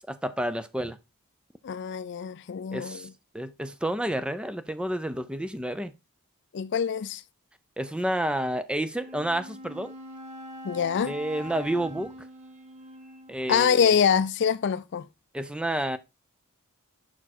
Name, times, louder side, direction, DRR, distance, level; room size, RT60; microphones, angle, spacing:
voice 1, 0.1-1.0 2.7-3.1 3.3-5.9 7.8-9.9 11.0-12.3 13.3-13.9 15.3-16.0, right 1 dB, 5° right, 0.4 m, -30 dB
voice 2, 1.6-3.1 6.5-7.2 10.6-11.1 13.5-15.1, left 7 dB, 55° left, 0.4 m, -25 dB
Wind instrument woodwind instrument, 8.9-13.8, equal, 30° right, 1.2 m, -43 dB
6.0 x 4.6 x 4.1 m
head